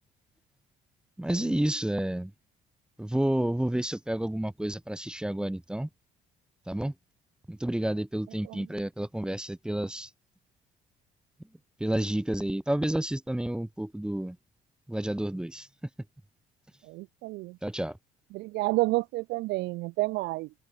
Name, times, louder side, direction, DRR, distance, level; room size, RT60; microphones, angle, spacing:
voice 1, 1.2-2.3 3.0-5.9 6.7-6.9 7.5-10.1 11.8-14.4 14.9-15.7 17.6-18.0, right 1 dB, 5° right, 0.8 m, -30 dB
voice 2, 16.8-17.6 18.3-20.5, right 21 dB, 85° right, 0.6 m, -30 dB
open air
cardioid pair, 110°, 17 cm